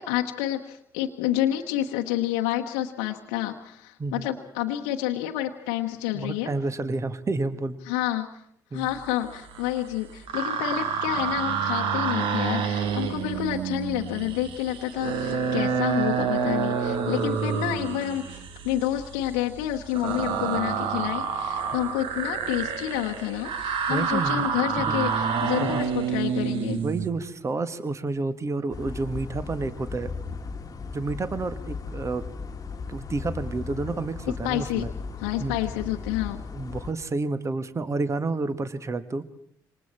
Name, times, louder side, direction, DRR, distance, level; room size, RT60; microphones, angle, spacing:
voice 1, 0.0-6.5 7.9-8.4 8.7-26.8 34.4-34.9 35.2-36.4, left 13 dB, 65° left, 3 dB, 1.2 m, -29 dB
voice 2, 6.1-7.8 8.7-8.9 23.9-24.5 24.9-25.0 25.6-25.8 26.8-30.1 30.9-32.2 32.9-34.9 35.4-35.6 36.5-39.2, right 3 dB, 30° right, 12 dB, 1.6 m, -30 dB
sound 1, 9.3-9.9 10.1-27.1, right 6 dB, 55° right, 1.8 m, -28 dB
sound 2, 28.7-36.9, left 4 dB, 35° left, 1.6 m, -36 dB
27.0 x 25.5 x 4.4 m, 0.69 s
figure-of-eight pair, 45°, 10 cm